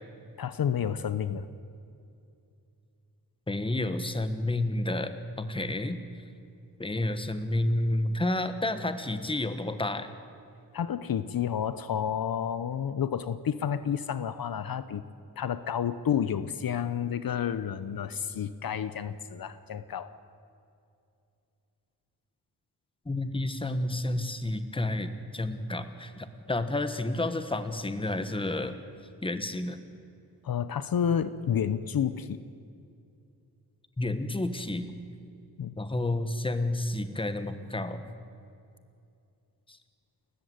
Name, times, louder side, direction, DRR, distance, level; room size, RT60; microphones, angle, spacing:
voice 1, 0.4-1.5 10.7-15.0 15.4-20.1 30.4-32.4 35.6-35.7, left 8 dB, 60° left, 13 dB, 0.9 m, -30 dB
voice 2, 3.5-6.0 6.8-10.1 23.0-28.7 29.2-30.0 34.0-34.9 35.8-38.0 39.7-39.8, left 1 dB, 15° left, 10 dB, 1.4 m, -30 dB
30.0 x 14.0 x 9.5 m, 2.6 s
wide cardioid pair, 140°, 40 cm